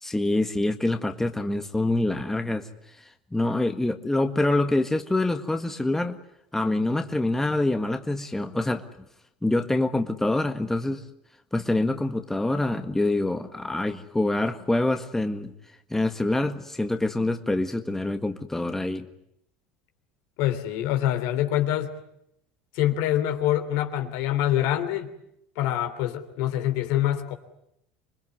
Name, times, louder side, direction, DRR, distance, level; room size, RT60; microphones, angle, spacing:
voice 1, 0.0-2.7 3.0-6.2 6.5-8.8 9.4-11.0 11.5-15.5 15.9-19.1, left 2 dB, 5° left, 7 dB, 1.6 m, -26 dB
voice 2, 20.4-22.0 22.7-25.1 25.5-27.3, left 12 dB, 70° left, 8 dB, 3.2 m, -25 dB
26.5 x 20.5 x 9.7 m, 0.77 s
supercardioid pair, 95°, 5 cm